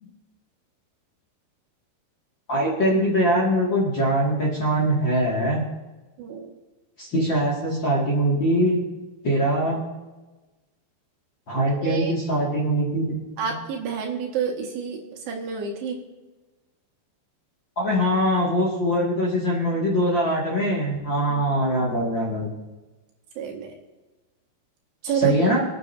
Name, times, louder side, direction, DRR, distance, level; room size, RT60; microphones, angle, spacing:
voice 1, 2.5-5.6 7.0-8.8 9.2-9.8 11.5-13.2 13.4-13.5 17.8-22.5 25.1-25.6, equal, 35° left, -4 dB, 2.2 m, -22 dB
voice 2, 6.2-6.5 11.8-12.1 13.4-15.0 15.3-16.0 21.3-21.7 23.4-23.7 25.0-25.4, right 7 dB, 80° right, 1 dB, 4.0 m, -28 dB
24.5 x 9.3 x 2.8 m, 1.1 s
omnidirectional pair, 4.8 m